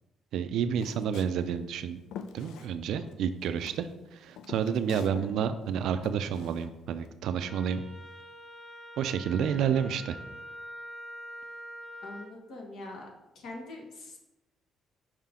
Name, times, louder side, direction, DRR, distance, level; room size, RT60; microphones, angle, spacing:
voice 1, 0.3-2.0 2.3-7.8 9.0-10.2, right 8 dB, 70° right, 10 dB, 0.4 m, -30 dB
Walk footsteps, 0.7-3.2 3.4-5.3 5.6-7.1, left 7 dB, 80° left, 0.4 m, -46 dB
voice 2, 4.9-5.3 9.6-10.0 12.0-13.1 13.3-14.2, left 2 dB, 60° left, 2 dB, 1.2 m, -43 dB
Wind instrument woodwind instrument, 7.4-12.3, equal, 10° left, 0.7 m, -45 dB
5.7 x 4.8 x 3.7 m, 0.93 s
cardioid pair, 165°, 0 cm